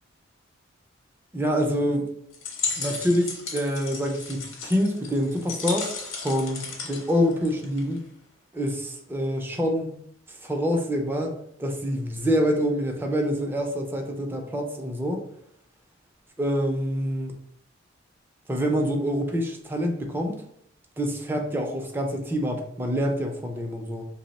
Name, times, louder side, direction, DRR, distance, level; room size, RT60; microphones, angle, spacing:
voice 1, 1.3-2.1 2.8-8.0 8.5-9.9 10.3-15.2 16.4-17.4 18.5-20.4 21.0-24.0, equal, 10° right, 2 dB, 0.4 m, -26 dB
sound 1, 2.3-8.0, left 4 dB, 90° left, 0.8 m, -34 dB
2.9 x 2.0 x 3.9 m, 0.72 s
head